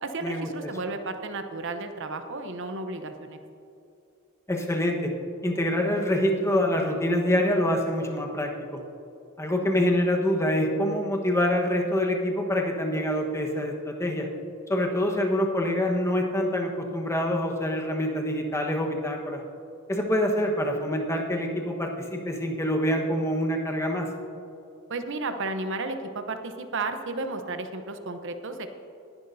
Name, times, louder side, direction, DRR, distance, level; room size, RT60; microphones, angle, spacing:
voice 1, 0.0-3.4 24.9-28.7, right 3 dB, 60° right, 7 dB, 0.8 m, -33 dB
voice 2, 4.5-5.1 5.4-8.8 9.4-14.3 14.7-19.4 19.9-24.1, left 1 dB, 15° left, 1 dB, 1.2 m, -26 dB
20.0 x 11.0 x 2.7 m, 2.8 s
head